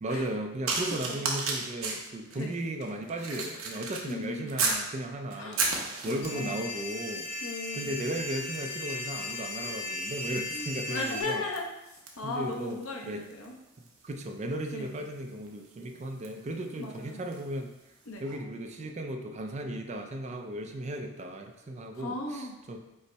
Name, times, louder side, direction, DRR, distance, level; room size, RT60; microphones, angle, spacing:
voice 1, 0.0-5.6 6.0-7.3 7.7-11.4 12.2-13.2 14.0-17.7 18.2-22.8, right 1 dB, 30° right, 4 dB, 0.4 m, -36 dB
sound 1, 0.7-4.9 5.3-6.6 7.3-7.6 7.8-17.5 18.2-18.4, right 4 dB, 70° right, 0.7 m, -36 dB
voice 2, 4.1-4.5 5.4-5.6 6.0-6.7 7.4-8.2 9.5-9.8 10.5-13.5 14.7-15.0 16.8-17.2 18.1-18.2 21.9-22.6, left 2 dB, 70° left, 1 dB, 0.7 m, -37 dB
sound 2, 6.2-11.2, left 2 dB, 90° left, 1.1 m, -37 dB
5.4 x 2.0 x 4.5 m, 0.94 s
head